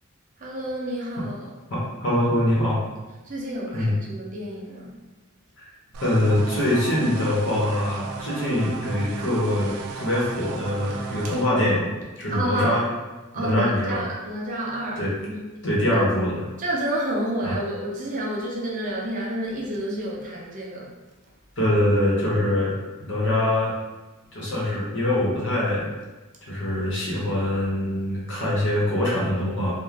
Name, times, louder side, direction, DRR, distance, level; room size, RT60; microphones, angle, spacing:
voice 1, 0.4-1.5 3.2-5.0 12.3-12.8 13.3-15.5 16.6-20.9, right 1 dB, 35° right, -4 dB, 0.5 m, -29 dB
voice 2, 1.7-2.8 3.7-3.9 6.0-11.9 12.2-12.8 13.3-14.1 15.0-15.2 15.6-16.4 17.4-17.6 21.6-22.7 23.0-23.7 24.3-25.9 26.5-29.7, left 1 dB, 55° left, -6 dB, 0.9 m, -23 dB
sound 1, 5.9-11.5, right 5 dB, 90° right, 0.3 m, -36 dB
2.5 x 2.2 x 3.2 m, 1.2 s
head